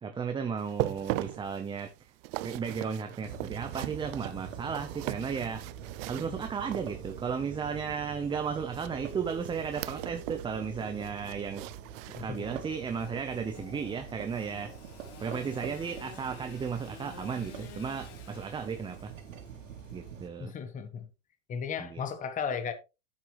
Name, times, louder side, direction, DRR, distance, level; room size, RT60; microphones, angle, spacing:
voice 1, 0.0-1.9 2.4-5.6 6.1-11.6 12.1-14.7 15.2-19.1 19.9-20.5 21.8-22.0, right 6 dB, 10° right, 0.8 m, -34 dB
sound 1, 0.6-7.3 8.7-10.5 10.8-12.8 13.2-13.4 13.9-14.0, right 19 dB, 50° right, 0.5 m, -39 dB
sound 2, 3.2-20.3, right 8 dB, 85° right, 2.3 m, -44 dB
voice 2, 12.1-12.4 20.4-21.1 21.5-22.7, left 6 dB, 20° left, 1.2 m, -35 dB
Engine / Sawing, 12.3-20.6, left 9 dB, 65° left, 2.5 m, -51 dB
10.0 x 7.8 x 3.1 m
supercardioid pair, 140°, 38 cm